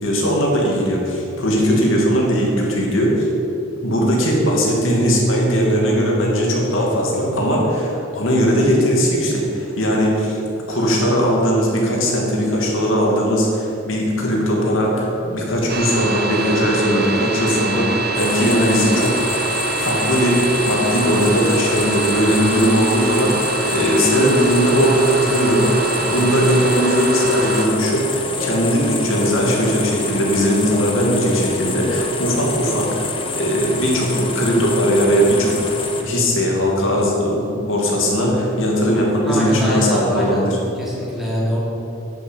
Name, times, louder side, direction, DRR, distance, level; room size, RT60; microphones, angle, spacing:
voice 1, 0.0-3.3 3.8-10.4 10.7-19.3 19.8-40.6, equal, 70° left, -2 dB, 2.6 m, -19 dB
sound 1, 15.7-27.7, right 3 dB, 50° right, 1.2 m, -25 dB
sound 2, 18.1-36.0, left 3 dB, 25° left, 1.1 m, -27 dB
voice 2, 39.2-40.4 40.8-41.6, equal, ahead, -7 dB, 3.2 m, -23 dB
11.0 x 8.1 x 8.2 m, 3.0 s
head